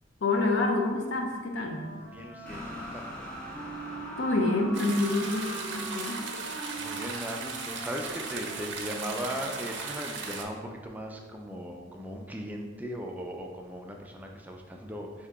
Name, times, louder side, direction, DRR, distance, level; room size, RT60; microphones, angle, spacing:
voice 1, 0.2-1.9 4.2-6.2, left 2 dB, 70° left, 2 dB, 0.6 m, -27 dB
Wind instrument woodwind instrument, 1.5-9.7, right 2 dB, 30° left, 0.9 m, -43 dB
voice 2, 2.0-3.0 6.8-15.3, equal, 10° right, 1 dB, 0.3 m, -38 dB
sound 1, 2.4-8.5, equal, 5° left, 0.7 m, -44 dB
sound 2, 4.7-10.4, right 4 dB, 65° right, 0.5 m, -37 dB
4.8 x 2.8 x 3.4 m, 1.4 s
head